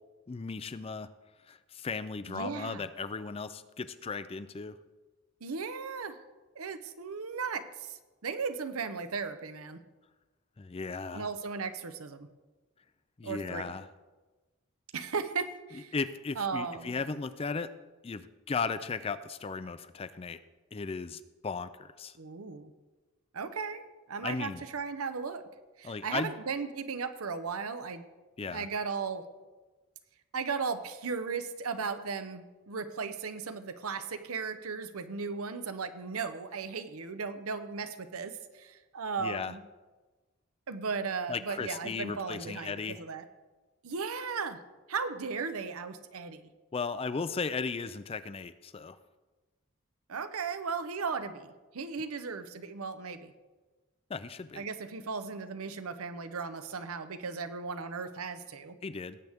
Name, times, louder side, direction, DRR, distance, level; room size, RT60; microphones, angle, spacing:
voice 1, 0.3-1.1 1.5-4.8 10.6-11.3 13.2-13.9 15.9-17.7 18.0-20.4 20.7-22.2 24.2-24.6 25.8-26.3 28.4-28.7 39.2-39.5 41.3-43.0 46.7-49.0 54.1-54.6 58.8-59.2, left 4 dB, 25° left, 13 dB, 0.4 m, -36 dB
voice 2, 2.3-2.9 5.4-6.2 6.6-9.8 11.1-12.3 13.2-13.7 14.9-15.9 16.4-16.9 22.2-22.7 23.3-23.8 24.1-25.5 25.8-28.0 28.4-29.2 30.3-39.6 40.7-43.2 43.8-44.6 44.9-46.5 50.1-53.3 54.5-58.8, right 5 dB, 80° right, 11 dB, 0.8 m, -36 dB
17.5 x 7.9 x 3.6 m, 1.2 s
head